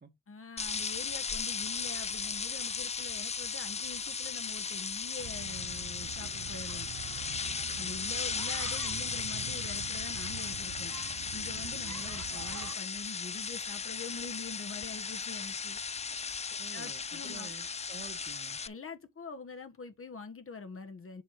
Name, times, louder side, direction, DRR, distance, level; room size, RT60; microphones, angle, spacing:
voice 1, 0.3-6.9 7.8-10.9 11.3-15.8 16.7-17.5 18.6-21.2, left 4 dB, 40° left, 1.4 m, -45 dB
sound 1, 0.6-18.7, left 5 dB, 20° left, 0.3 m, -36 dB
sound 2, 5.2-12.8, right 11 dB, 60° right, 0.6 m, -44 dB
voice 2, 16.6-18.6, right 4 dB, 30° right, 1.6 m, -50 dB
6.9 x 4.3 x 5.0 m
cardioid pair, 75°, 32 cm